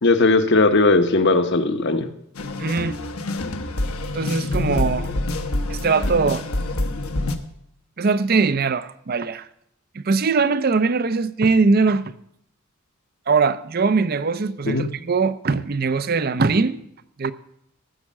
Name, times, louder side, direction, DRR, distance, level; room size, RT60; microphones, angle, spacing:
voice 1, 0.0-2.1 14.7-14.9, left 3 dB, 50° left, 0.9 m, -18 dB
sound 1, 2.3-7.3, left 2 dB, 80° left, 1.1 m, -26 dB
voice 2, 2.6-3.0 4.1-5.1 5.7-6.5 8.0-9.5 9.9-12.1 13.3-16.8 17.2-17.3, right 4 dB, 45° right, 0.5 m, -21 dB
15.0 x 6.4 x 7.3 m
head